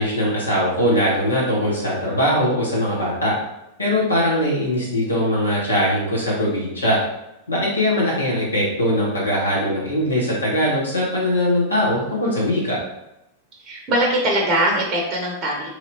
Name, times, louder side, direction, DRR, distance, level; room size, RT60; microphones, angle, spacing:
voice 1, 0.0-3.4 3.8-7.0 7.5-12.8, equal, 85° left, -6 dB, 1.2 m, -21 dB
voice 2, 13.6-15.7, right 1 dB, 30° right, -1 dB, 0.6 m, -21 dB
3.0 x 2.8 x 2.7 m, 0.89 s
figure-of-eight pair, 95°, 0 cm